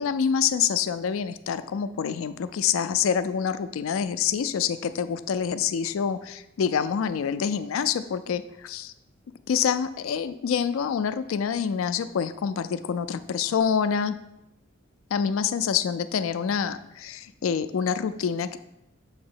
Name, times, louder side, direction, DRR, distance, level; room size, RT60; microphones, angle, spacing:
voice 1, 0.0-8.9 9.5-14.2 15.1-18.6, left 7 dB, 80° left, 12 dB, 0.4 m, -26 dB
7.1 x 2.9 x 5.5 m, 0.86 s
head